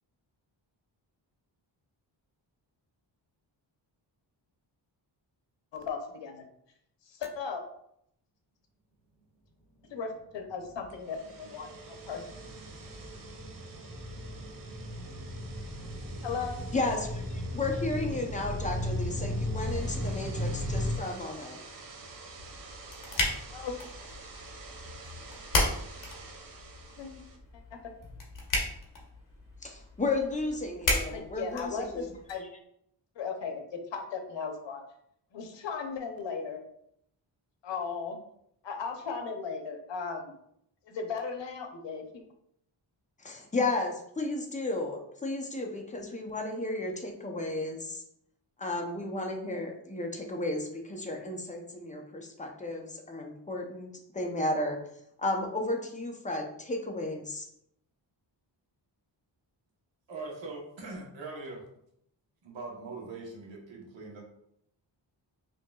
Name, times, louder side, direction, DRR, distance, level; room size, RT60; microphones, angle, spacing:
voice 1, 5.7-6.3 7.1-7.6 9.9-12.2 16.2-16.6 23.5-23.8 27.0-27.1 27.7-27.8 31.1-32.5 33.2-34.8 35.3-36.6 37.6-38.2 38.6-40.3 40.9-42.2, left 5 dB, 70° left, 4 dB, 0.8 m, -36 dB
sound 1, 10.6-21.0, left 1 dB, 5° right, 1.4 m, -36 dB
sound 2, 10.8-27.4, right 3 dB, 50° right, 0.6 m, -48 dB
voice 2, 16.7-21.6 29.6-32.1 43.2-48.0 48.6-54.8 55.2-57.5, left 2 dB, 15° left, 1 dB, 0.6 m, -33 dB
sound 3, 22.4-32.3, left 2 dB, 45° left, 1.0 m, -35 dB
voice 3, 60.1-61.6 62.4-64.2, right 3 dB, 75° right, -1 dB, 1.2 m, -41 dB
5.0 x 2.8 x 2.3 m, 0.74 s
wide cardioid pair, 140°, 45 cm